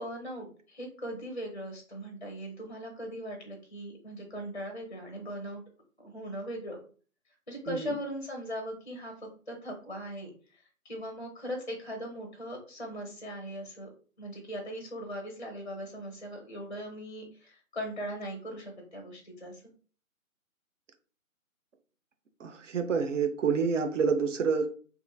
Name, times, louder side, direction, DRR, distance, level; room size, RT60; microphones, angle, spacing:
voice 1, 0.0-5.6 6.0-6.8 7.5-9.1 9.5-13.9 14.2-19.6, equal, 35° left, 2 dB, 0.4 m, -39 dB
voice 2, 7.7-8.0 22.4-24.8, right 5 dB, 60° right, 7 dB, 0.5 m, -28 dB
2.8 x 2.4 x 2.2 m, 0.40 s
figure-of-eight pair, 150°, 42 cm